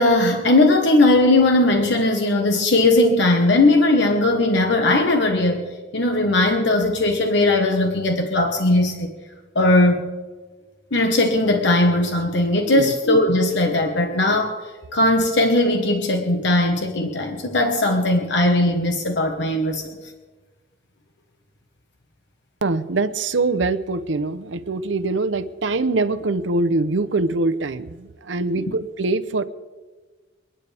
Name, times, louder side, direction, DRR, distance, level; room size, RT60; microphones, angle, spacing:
voice 1, 0.0-9.1 9.5-10.1 10.9-14.6 14.9-19.8, left 2 dB, 70° left, 3 dB, 1.4 m, -18 dB
voice 2, 22.6-29.4, right 3 dB, 80° right, 12 dB, 0.8 m, -23 dB
29.5 x 9.9 x 3.5 m, 1.3 s
head